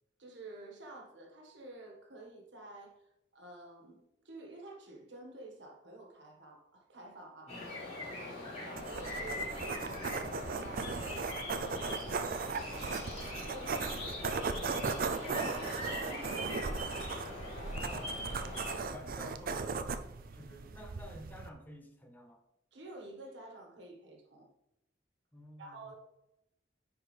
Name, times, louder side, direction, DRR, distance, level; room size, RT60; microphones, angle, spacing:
voice 1, 0.2-7.6 8.0-12.6 12.9-14.5 14.8-15.4 16.0-16.8 22.7-24.5 25.6-25.9, right 2 dB, 70° right, 1 dB, 1.6 m, -51 dB
sound 1, 7.5-18.8, left 1 dB, 35° left, 2.6 m, -42 dB
sound 2, 8.8-21.5, right 4 dB, 50° right, 0.4 m, -38 dB
sound 3, 12.2-14.0 14.3-19.1, right 2 dB, 35° right, 1.1 m, -50 dB
voice 2, 15.2-15.6 16.6-16.8 17.6-18.2 18.7-20.0 20.3-22.4 25.3-25.9, equal, 10° left, 4 dB, 0.7 m, -50 dB
9.6 x 4.6 x 3.3 m, 0.85 s
head